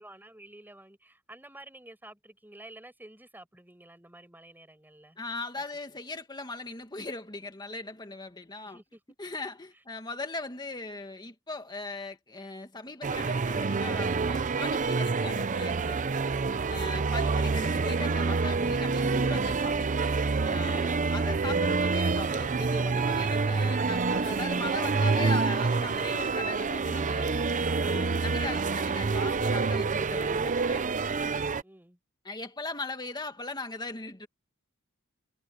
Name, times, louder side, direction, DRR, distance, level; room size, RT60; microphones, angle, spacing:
voice 1, 0.0-5.2 5.6-6.0 8.6-9.0 9.7-9.8 31.6-32.0, right 1 dB, 10° right, 6.0 m, -51 dB
voice 2, 5.2-8.8 9.2-16.0 16.7-19.9 20.4-27.3 27.8-30.8 32.2-34.3, left 3 dB, 20° left, 2.1 m, -39 dB
sound 1, 13.0-31.6, right 4 dB, 35° right, 0.6 m, -27 dB
head